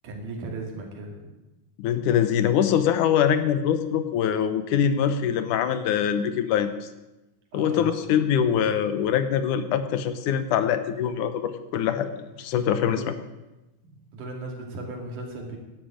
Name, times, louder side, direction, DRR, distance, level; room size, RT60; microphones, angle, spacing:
voice 1, 0.0-1.3 7.5-8.0 12.8-13.1 13.8-15.6, right 2 dB, 75° right, 0 dB, 4.0 m, -37 dB
voice 2, 1.8-6.7 7.5-13.1, left 8 dB, 80° left, 11 dB, 2.4 m, -23 dB
13.0 x 11.0 x 8.8 m, 1.0 s
omnidirectional pair, 3.7 m